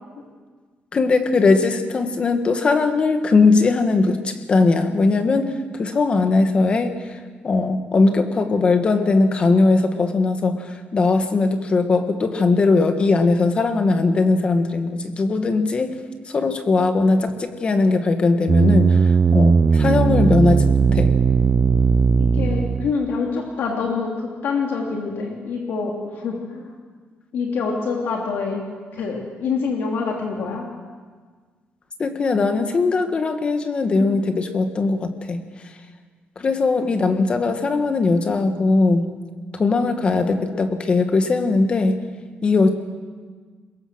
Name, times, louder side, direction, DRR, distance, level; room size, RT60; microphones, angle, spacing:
voice 1, 0.9-7.2 7.4-16.0 16.3-21.1 32.0-35.4 36.4-39.1 39.5-42.0 42.4-42.7, left 3 dB, 30° left, 7 dB, 1.7 m, -19 dB
sound 1, 18.5-23.0, right 5 dB, 30° right, 0.6 m, -17 dB
voice 2, 22.1-26.7 27.3-28.6 28.9-30.7 34.0-34.1, left 5 dB, 65° left, 0 dB, 3.1 m, -26 dB
23.0 x 22.0 x 6.4 m, 1.5 s
cardioid pair, 160°, 4 cm